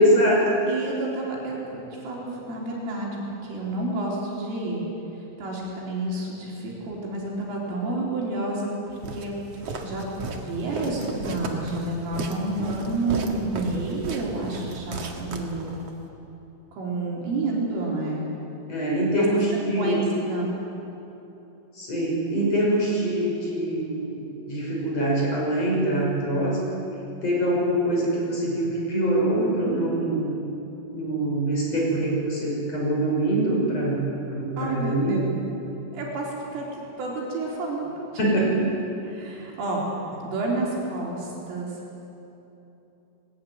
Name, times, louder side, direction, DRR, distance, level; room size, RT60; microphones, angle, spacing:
voice 1, 0.0-0.6 18.7-20.0 21.8-24.2 24.5-26.6 27.2-30.3 30.9-35.2 38.2-38.6, right 1 dB, 30° left, -3 dB, 6.6 m, -24 dB
voice 2, 0.7-4.8 5.4-9.3 9.8-10.0 10.4-15.7 16.7-18.3 19.2-19.3 19.7-20.5 34.6-35.2 35.9-38.3 39.0-39.8 40.2-41.8, right 2 dB, 80° right, -3 dB, 6.3 m, -30 dB
Walk footsteps, 9.0-16.0, right 3 dB, 60° right, 1.6 m, -34 dB
20.5 x 19.0 x 9.4 m, 3.0 s
omnidirectional pair, 5.7 m